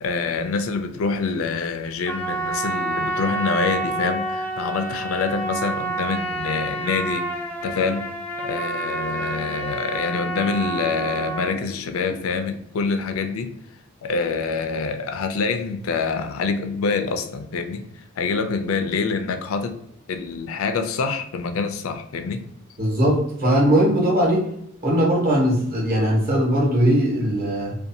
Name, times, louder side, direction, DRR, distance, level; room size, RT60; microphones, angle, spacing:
voice 1, 0.0-7.3 7.6-8.1 8.4-13.5 14.0-17.8 18.2-19.8 20.1-22.4, left 4 dB, 80° left, 7 dB, 0.4 m, -26 dB
Trumpet, 2.1-11.5, right 2 dB, 5° left, 0.4 m, -28 dB
voice 2, 22.8-24.4 24.8-27.8, equal, 45° right, -4 dB, 1.1 m, -19 dB
2.6 x 2.3 x 2.7 m, 0.76 s
head